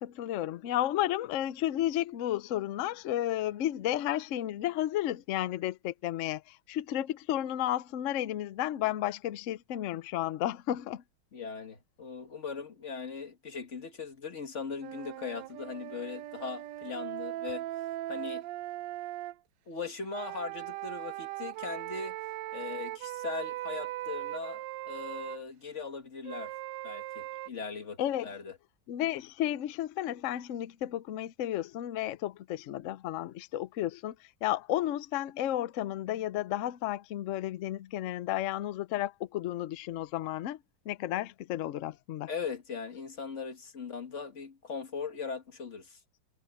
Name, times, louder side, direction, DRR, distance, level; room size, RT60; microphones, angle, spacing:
voice 1, 0.0-11.0 28.0-28.3 28.9-34.1 34.4-40.6 40.9-42.3, left 13 dB, 65° left, 0.7 m, -32 dB
voice 2, 11.3-17.7 18.1-18.4 19.7-22.2 22.5-26.5 26.8-28.6 42.3-46.0, left 5 dB, 40° left, 1.8 m, -39 dB
sound 1, 14.8-19.4 20.1-25.4 26.3-27.5, right 15 dB, 75° right, 1.2 m, -39 dB
omnidirectional pair, 2.1 m